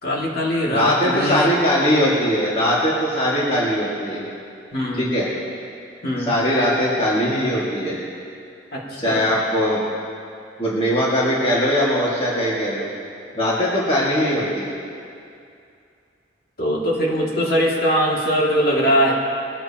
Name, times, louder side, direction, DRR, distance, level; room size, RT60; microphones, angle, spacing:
voice 1, 0.0-1.5 4.7-5.1 6.0-6.3 8.7-9.3 16.6-19.1, equal, 50° left, -3 dB, 2.3 m, -21 dB
voice 2, 0.7-4.2 4.9-5.3 6.3-8.0 9.0-9.8 10.6-12.9 13.4-14.7, equal, 30° left, -7 dB, 1.9 m, -20 dB
22.0 x 13.5 x 2.9 m, 2.5 s
head